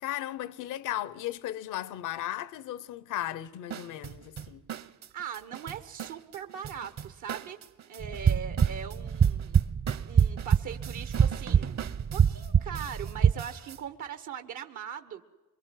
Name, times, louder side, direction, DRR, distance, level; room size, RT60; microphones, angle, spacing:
voice 1, 0.0-4.6, left 13 dB, 90° left, 1.0 m, -36 dB
sound 1, 3.7-13.8, right 9 dB, 60° right, 1.3 m, -42 dB
voice 2, 5.1-9.7 10.1-11.8 12.1-15.2, right 8 dB, 80° right, 1.4 m, -40 dB
sound 2, 8.0-13.3, right 7 dB, 40° right, 0.8 m, -25 dB
24.0 x 22.5 x 9.3 m
cardioid pair, 90°, 30 cm